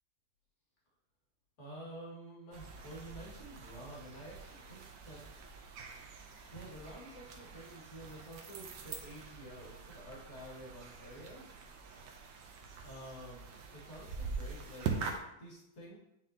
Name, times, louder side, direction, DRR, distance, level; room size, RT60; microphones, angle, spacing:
voice 1, 1.6-5.2 6.5-11.5 12.8-15.1 15.4-16.0, right 1 dB, 35° left, -6 dB, 2.2 m, -50 dB
sound 1, 2.5-15.2, right 5 dB, 70° right, 1.3 m, -44 dB
9.3 x 3.8 x 2.8 m, 0.85 s
omnidirectional pair, 2.1 m